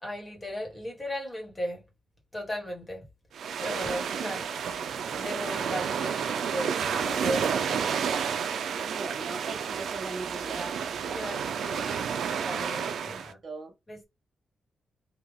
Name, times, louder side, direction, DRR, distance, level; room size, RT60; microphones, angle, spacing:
voice 1, 0.0-1.8 2.3-3.1 3.6-4.5 5.1-8.0 11.0-13.4 13.9-14.0, equal, 20° left, 1.3 m, -37 dB
sound 1, 3.3-13.3, right 7 dB, 70° right, 0.4 m, -31 dB
voice 2, 8.8-10.8 13.0-13.1 13.4-13.7, right 3 dB, 35° right, 0.8 m, -39 dB
3.4 x 2.3 x 3.5 m
wide cardioid pair, 170°, 0 cm